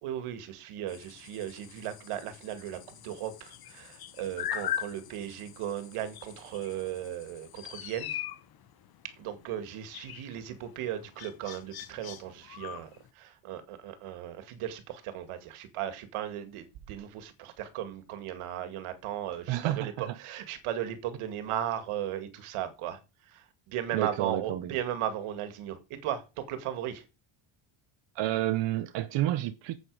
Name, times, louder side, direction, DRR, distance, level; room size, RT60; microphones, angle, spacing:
voice 1, 0.0-8.2 9.0-23.0 23.3-27.0, right 10 dB, 85° right, 2.2 m, -36 dB
sound 1, 0.9-13.1, left 10 dB, 45° left, 1.3 m, -41 dB
voice 2, 19.5-20.2 23.9-24.8 28.1-29.8, right 14 dB, 60° right, 0.9 m, -30 dB
9.1 x 8.3 x 4.9 m
cardioid pair, 160°, 49 cm